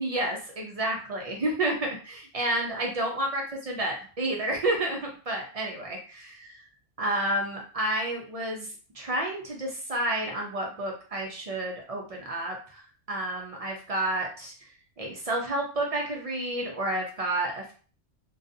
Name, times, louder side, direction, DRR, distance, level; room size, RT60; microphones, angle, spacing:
voice 1, 0.0-6.6 7.0-8.7 8.9-12.8 13.1-14.5 15.0-17.7, right 1 dB, 60° right, 0 dB, 0.3 m, -30 dB
2.5 x 2.3 x 2.5 m, 0.39 s
omnidirectional pair, 1.3 m